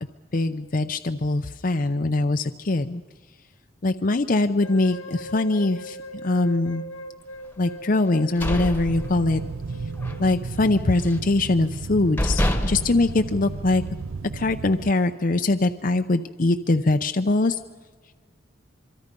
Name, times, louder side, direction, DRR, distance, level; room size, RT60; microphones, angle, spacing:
voice 1, 0.3-3.0 3.8-6.0 6.2-6.8 7.6-9.4 10.2-13.8 14.3-17.6, left 2 dB, 40° left, 7 dB, 0.6 m, -22 dB
sound 1, 4.6-10.6, equal, 90° left, 1.6 m, -40 dB
sound 2, 8.1-9.6 10.0-10.2 10.6-11.3 11.8-11.9 12.2-14.0, equal, 10° left, 1.3 m, -27 dB
sound 3, 8.9-14.9, right 4 dB, 90° right, 0.6 m, -34 dB
26.0 x 23.5 x 5.3 m, 1.5 s
head